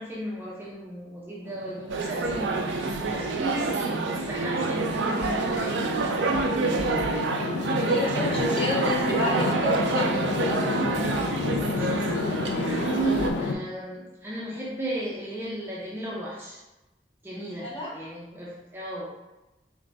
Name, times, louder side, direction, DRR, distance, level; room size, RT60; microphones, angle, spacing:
voice 1, 0.0-6.2 11.8-16.6 17.2-19.1, right 1 dB, 15° right, -6 dB, 0.5 m, -35 dB
sound 1, 1.5-13.5, left 4 dB, 80° left, 0.4 m, -31 dB
sound 2, 1.9-13.3, right 4 dB, 90° right, 0.4 m, -27 dB
voice 2, 7.8-10.6 17.6-17.9, left 2 dB, 35° left, -6 dB, 1.2 m, -30 dB
3.9 x 2.5 x 3.3 m, 1.0 s
head